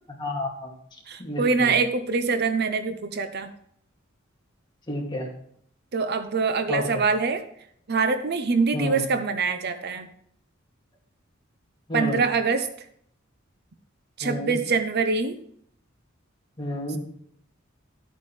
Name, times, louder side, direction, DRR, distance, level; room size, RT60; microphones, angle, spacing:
voice 1, 0.2-0.7 1.2-1.7 4.9-5.3 6.7-7.0 8.7-9.0 11.9-12.2 14.2-14.6 16.6-17.0, left 1 dB, 25° left, -2 dB, 2.5 m, -30 dB
voice 2, 1.1-3.5 5.9-7.4 7.9-10.1 11.9-12.7 14.2-15.4, right 4 dB, 55° right, 10 dB, 0.7 m, -24 dB
12.5 x 8.5 x 3.3 m, 0.66 s
head